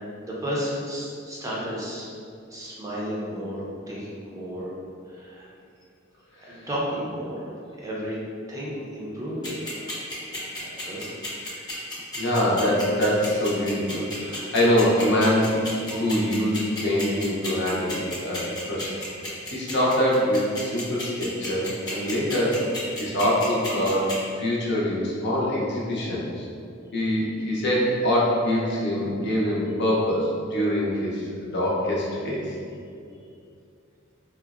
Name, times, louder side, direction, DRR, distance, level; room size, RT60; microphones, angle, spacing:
voice 1, 0.2-2.1 2.5-4.7 5.0-5.5 6.4-7.5 7.8-8.2 8.5-9.8 10.2-11.1, equal, 15° right, -6 dB, 0.5 m, -33 dB
sound 1, 9.4-24.1, left 2 dB, 20° left, 0.7 m, -33 dB
voice 2, 12.1-22.6 23.0-26.4 26.9-32.4, equal, 60° left, -5 dB, 0.6 m, -24 dB
3.6 x 2.0 x 2.3 m, 2.5 s
head